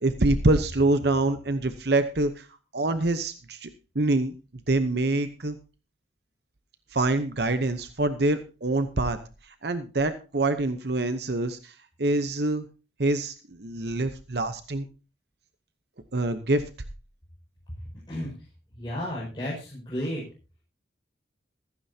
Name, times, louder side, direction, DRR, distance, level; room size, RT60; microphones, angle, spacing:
voice 1, 0.0-2.5 2.7-4.3 4.7-5.6 6.9-9.2 9.4-12.7 13.0-14.9 16.1-16.6, right 2 dB, 60° right, 10 dB, 0.9 m, -25 dB
voice 2, 18.7-20.2, equal, 25° left, -6 dB, 5.6 m, -32 dB
15.5 x 14.5 x 2.8 m, 0.32 s
head